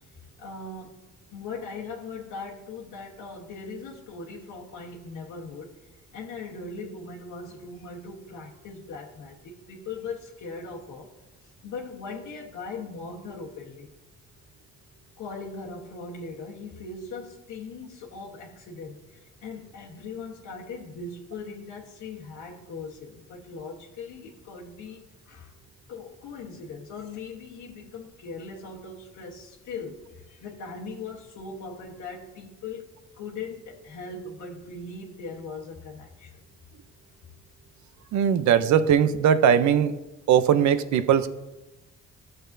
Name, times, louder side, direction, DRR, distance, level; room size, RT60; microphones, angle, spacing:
voice 1, 0.4-1.0 1.3-5.7 6.1-11.1 11.6-13.9 15.2-25.5 25.9-36.5, left 4 dB, 80° left, 1.2 m, -39 dB
voice 2, 38.1-39.9 40.3-41.3, right 8 dB, 70° right, 0.6 m, -20 dB
14.0 x 6.6 x 2.6 m
cardioid pair, 90°, 30 cm